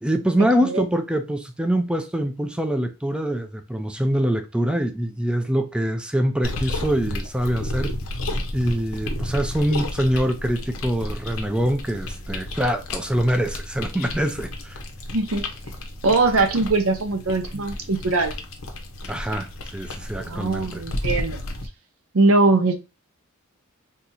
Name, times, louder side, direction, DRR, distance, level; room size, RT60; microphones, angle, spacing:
voice 1, 0.0-7.9 8.5-14.8 19.1-20.8, equal, 5° right, 0.3 m, -24 dB
sound 1, 6.4-21.7, left 1 dB, 70° left, 0.7 m, -32 dB
voice 2, 15.1-15.5 16.0-18.3 20.3-21.4 22.1-22.7, right 3 dB, 70° right, 0.7 m, -21 dB
2.8 x 2.4 x 4.0 m
head